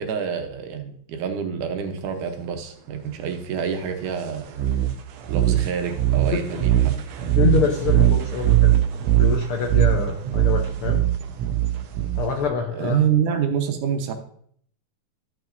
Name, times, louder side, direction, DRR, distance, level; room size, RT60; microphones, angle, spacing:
voice 1, 0.0-4.5 5.3-6.9 12.7-14.1, right 7 dB, 85° right, 5 dB, 2.5 m, -26 dB
sound 1, 4.5-12.5, right 13 dB, 70° right, 1.7 m, -21 dB
voice 2, 7.4-8.7 9.1-11.0 12.2-12.9, left 6 dB, 80° left, 2 dB, 1.2 m, -25 dB
13.5 x 6.1 x 2.6 m, 0.62 s
omnidirectional pair, 3.5 m